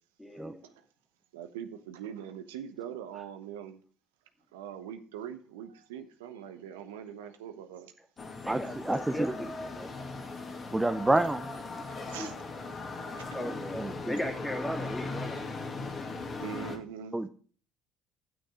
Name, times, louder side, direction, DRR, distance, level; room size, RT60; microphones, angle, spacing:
voice 1, 0.2-0.7 8.4-9.9 12.0-12.3 13.3-15.7, left 1 dB, 10° left, 4 dB, 2.3 m, -37 dB
voice 2, 1.3-3.8 4.5-7.9 12.1-12.4 13.1-13.3 16.4-17.2, right 9 dB, 90° right, 8 dB, 0.9 m, -42 dB
sound 1, 8.2-16.8, left 3 dB, 40° left, 1.9 m, -39 dB
voice 3, 8.4-9.3 10.7-11.6 13.8-14.1 17.1-17.3, right 2 dB, 10° right, 8 dB, 0.7 m, -28 dB
10.5 x 6.4 x 4.9 m, 0.42 s
hypercardioid pair, 70°, 0 cm